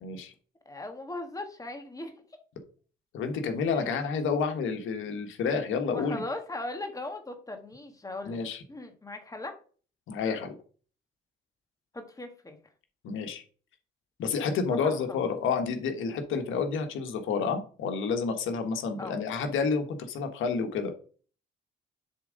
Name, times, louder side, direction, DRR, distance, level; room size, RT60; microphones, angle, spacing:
voice 1, 0.0-0.3 3.1-6.2 8.2-8.6 10.1-10.5 13.0-13.4 14.2-20.9, left 5 dB, 80° left, 6 dB, 1.4 m, -29 dB
voice 2, 0.7-2.1 3.7-4.1 5.9-8.4 8.7-9.6 11.9-12.6 14.7-15.3 19.0-19.2, left 2 dB, 15° left, 5 dB, 1.7 m, -39 dB
7.3 x 3.7 x 5.1 m, 0.40 s
cardioid pair, 90°, 20 cm